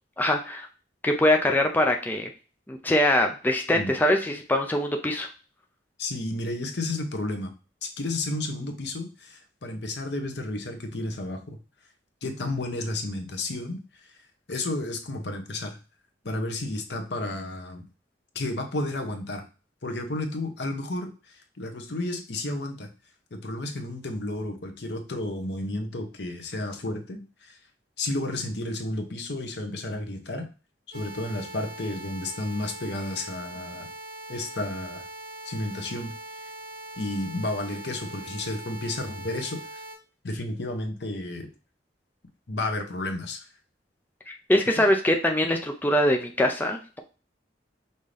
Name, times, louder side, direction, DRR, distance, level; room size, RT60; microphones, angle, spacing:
voice 1, 0.2-0.7 1.0-2.3 2.7-5.3 44.3-47.0, left 1 dB, 10° left, 3 dB, 0.4 m, -23 dB
voice 2, 6.0-7.5 7.8-11.6 12.2-13.8 14.1-14.2 14.5-15.8 16.2-17.9 18.3-19.4 19.8-22.9 23.3-27.6 28.0-30.5 30.9-33.9 34.3-35.0 35.4-36.1 37.0-39.8 40.2-41.5 42.5-43.5 44.8-44.9, left 2 dB, 65° left, 5 dB, 0.9 m, -32 dB
sound 1, 30.9-40.0, right 1 dB, 50° right, 2.1 m, -41 dB
5.4 x 2.7 x 3.3 m, 0.34 s
head